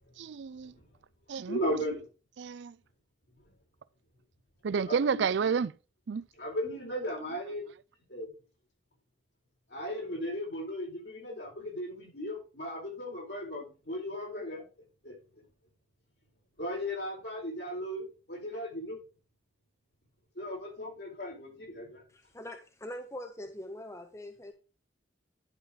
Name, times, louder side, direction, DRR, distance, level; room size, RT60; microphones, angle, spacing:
voice 1, 0.2-0.7 1.3-1.6 2.4-2.7 4.6-5.7 6.1-6.2, right 6 dB, 70° right, 0.4 m, -30 dB
voice 2, 1.5-2.0 4.9-5.3 6.4-7.7 8.1-8.3 9.7-14.6 15.0-15.1 16.6-19.0 20.3-22.0, equal, 60° left, 4.6 m, -36 dB
voice 3, 22.1-24.5, left 1 dB, 15° left, 0.6 m, -43 dB
11.0 x 5.5 x 3.9 m
head